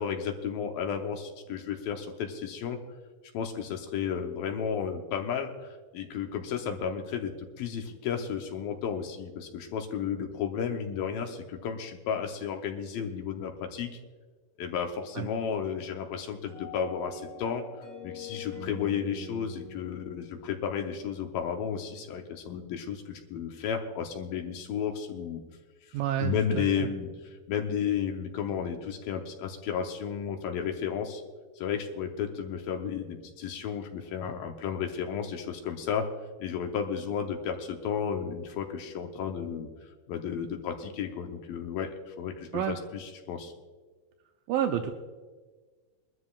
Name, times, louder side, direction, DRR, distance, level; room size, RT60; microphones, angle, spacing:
voice 1, 0.0-2.8 3.3-13.9 14.6-17.6 18.0-25.4 26.2-31.2 31.6-36.1 36.4-39.7 40.1-42.6 42.9-43.5, left 7 dB, 75° left, 4 dB, 2.5 m, -33 dB
sound 1, 16.5-21.6, left 3 dB, 25° left, 3.2 m, -44 dB
voice 2, 25.9-26.9 42.5-42.8 44.5-44.9, right 10 dB, 80° right, 4 dB, 2.2 m, -29 dB
23.0 x 13.0 x 2.4 m, 1.4 s
omnidirectional pair, 4.4 m